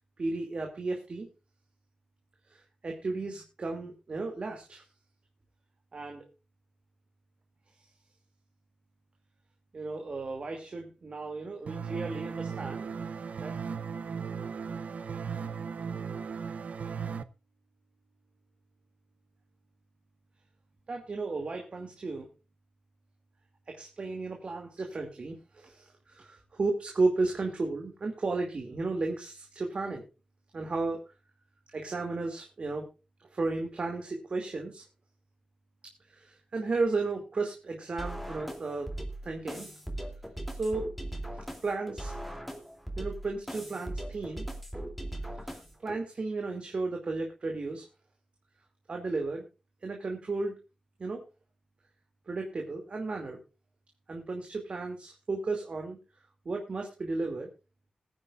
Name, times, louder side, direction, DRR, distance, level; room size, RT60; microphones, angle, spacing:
voice 1, 0.2-1.3 2.5-4.8 5.9-6.2 9.7-12.9 13.4-13.6 20.9-22.3 23.7-30.0 30.5-31.0 31.7-32.8 33.3-34.8 36.1-38.9 39.2-39.7 40.6-40.8 41.3-42.1 43.0-44.4 45.4-47.8 48.9-49.4 49.8-50.5 51.0-51.2 52.3-53.4 54.1-56.0 56.4-57.5, right 3 dB, 50° right, 2 dB, 2.4 m, -34 dB
sound 1, 11.7-17.2, right 6 dB, 70° right, 0.7 m, -36 dB
sound 2, 38.0-46.0, right 1 dB, ahead, 2.8 m, -39 dB
21.5 x 9.7 x 2.4 m, 0.29 s
wide cardioid pair, 110°, 2 cm